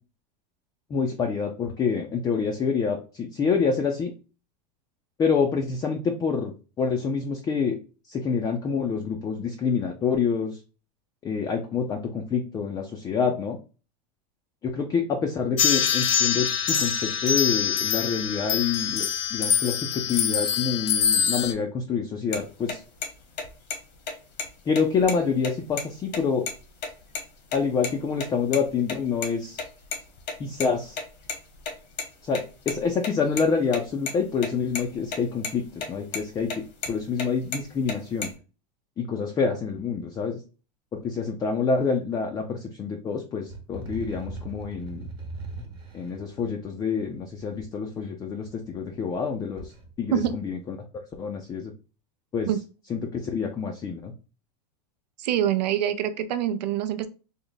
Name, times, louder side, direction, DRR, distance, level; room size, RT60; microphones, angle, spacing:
voice 1, 0.9-4.1 5.2-6.5 6.8-7.8 8.1-10.6 11.2-13.6 14.6-19.0 19.3-22.8 24.7-26.5 27.5-29.6 30.4-31.0 32.2-38.3 39.0-40.4 40.9-45.0 45.9-49.7 50.0-50.8 51.2-51.7 52.3-52.5 52.9-54.1, left 5 dB, 15° left, 2 dB, 0.4 m, -27 dB
sound 1, 15.6-21.5, left 8 dB, 45° left, 0.7 m, -24 dB
sound 2, 22.3-22.4 22.7-22.8 23.0-23.1 23.4-23.8 24.1-24.2 24.4-24.5 24.7-25.8 26.1-26.2 26.5-26.6 26.8-27.2 27.5-27.9 28.2-29.3 29.5-32.0 32.3-34.1 34.4-34.5 34.7-35.2 35.4-35.9 36.1-37.3 37.5-38.3, left 5 dB, 80° left, 1.2 m, -32 dB
sound 3, 43.5-47.6 48.4-49.2 49.5-50.4, right 2 dB, 20° right, 0.8 m, -40 dB
voice 2, 55.2-57.1, right 10 dB, 85° right, 11 dB, 0.5 m, -25 dB
3.4 x 2.1 x 3.8 m, 0.34 s
supercardioid pair, 140°, 21 cm